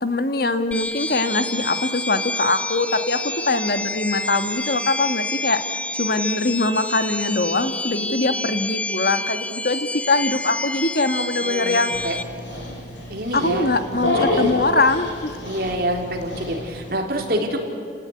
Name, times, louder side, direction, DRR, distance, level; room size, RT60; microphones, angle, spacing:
voice 1, 0.0-5.6 6.0-11.9 13.3-15.3, left 2 dB, 50° left, 9 dB, 1.6 m, -22 dB
sound 1, 0.7-12.2, left 2 dB, 5° left, 0.7 m, -29 dB
voice 2, 11.4-11.8 12.0-12.2 13.1-14.7 15.5-17.6, equal, 50° right, 2 dB, 3.6 m, -26 dB
Dog, 11.9-16.9, left 1 dB, 75° left, 6.3 m, -29 dB
29.5 x 18.5 x 9.7 m, 2.3 s
head